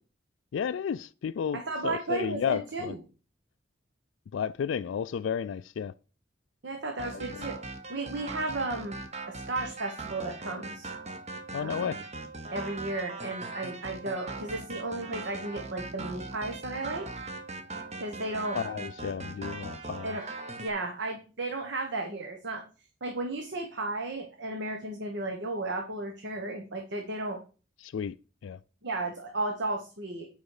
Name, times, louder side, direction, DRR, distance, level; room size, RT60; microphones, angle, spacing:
voice 1, 0.5-2.9 4.3-5.9 7.1-7.5 11.5-12.0 18.5-20.2 27.8-28.2 28.4-28.6, left 7 dB, 80° left, 0.3 m, -32 dB
voice 2, 1.5-3.0 6.6-7.6 7.9-9.0 9.3-10.9 11.6-11.9 12.5-17.0 18.0-18.6 20.0-20.2 20.6-22.6 23.0-27.4 28.8-30.3, right 2 dB, 65° right, 1.3 m, -34 dB
sound 1, 7.0-20.7, right 3 dB, 35° right, 1.1 m, -40 dB
9.4 x 5.1 x 4.9 m
head